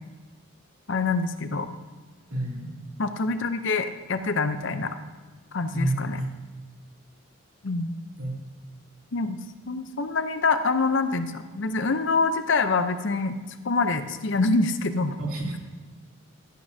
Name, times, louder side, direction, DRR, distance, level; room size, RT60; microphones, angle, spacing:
voice 1, 0.9-1.7 3.0-5.0 5.5-6.2 7.6-7.9 9.1-9.4 9.7-13.3 13.6-15.2, left 3 dB, 60° left, 9 dB, 0.7 m, -25 dB
voice 2, 2.3-2.8 5.7-6.3 8.2-8.5 15.2-15.6, right 1 dB, 85° right, -3 dB, 2.8 m, -29 dB
13.0 x 11.0 x 2.7 m, 1.4 s
head